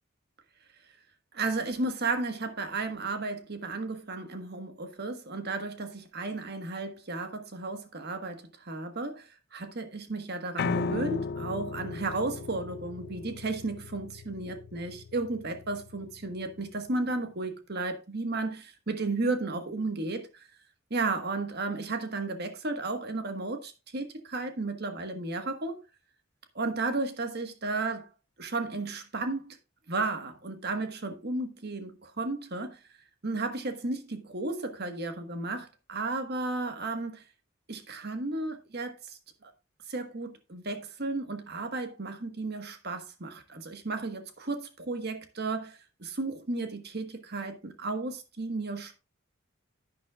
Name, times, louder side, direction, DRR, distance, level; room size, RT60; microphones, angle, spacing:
voice 1, 1.3-20.5 20.9-25.8 26.5-28.1 28.4-29.6 29.9-32.8 33.2-37.2 37.7-39.5 39.9-49.0, right 3 dB, 50° right, 1.4 m, -34 dB
Piano, 10.6-16.7, left 4 dB, 50° left, 0.4 m, -36 dB
11.0 x 9.5 x 2.4 m
head